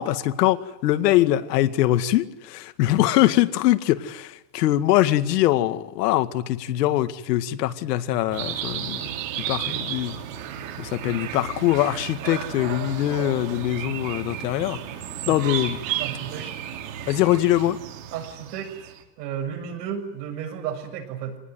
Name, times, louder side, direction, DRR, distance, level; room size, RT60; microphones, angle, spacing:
voice 1, 0.0-9.0 9.5-10.1 10.9-14.8 15.3-15.8 17.1-17.8, left 14 dB, 80° left, 10 dB, 2.2 m, -22 dB
sound 1, 8.3-19.0, right 10 dB, 50° right, 3.7 m, -33 dB
voice 2, 15.9-16.5 18.1-18.9 19.2-21.4, right 8 dB, 75° right, 6 dB, 7.0 m, -33 dB
26.0 x 19.5 x 9.6 m, 0.98 s
supercardioid pair, 175°, 48 cm